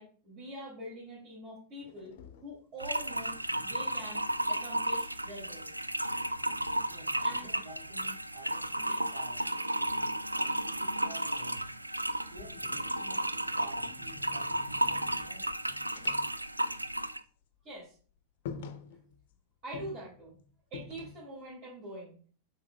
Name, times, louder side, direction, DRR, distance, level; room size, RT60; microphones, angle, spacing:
voice 1, 0.0-2.1 2.4-3.4 3.6-5.7 7.2-7.5 8.8-9.0 17.6-18.0 19.6-20.3 20.7-22.3, equal, 40° right, -6 dB, 2.8 m, -44 dB
sound 1, 1.8-4.9 5.3-8.2 9.5-11.5 12.0-17.3 17.5-17.7 18.1-18.2 18.4-19.3 19.7-21.4, left 6 dB, 55° left, 0.7 m, -50 dB
sound 2, 2.8-17.2, right 1 dB, 85° right, 0.3 m, -33 dB
voice 2, 6.9-11.7 12.3-15.5, right 2 dB, 60° right, 2 dB, 2.0 m, -51 dB
8.4 x 5.2 x 2.4 m, 0.42 s
figure-of-eight pair, 90°, 0 cm